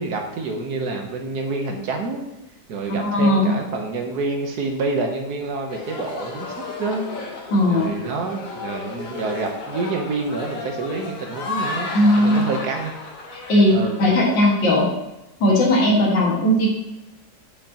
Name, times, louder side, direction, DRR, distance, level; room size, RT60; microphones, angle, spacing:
voice 1, 0.0-2.2 2.7-7.0 7.7-12.9 13.7-14.1, right 3 dB, 65° right, 3 dB, 1.4 m, -27 dB
voice 2, 2.9-3.5 7.5-7.9 11.9-12.4 13.5-14.9 15.4-16.7, left 1 dB, 80° left, -4 dB, 2.5 m, -17 dB
sound 1, 5.7-14.4, left 3 dB, 55° left, 1.5 m, -33 dB
7.9 x 6.8 x 2.9 m, 0.95 s
omnidirectional pair, 1.9 m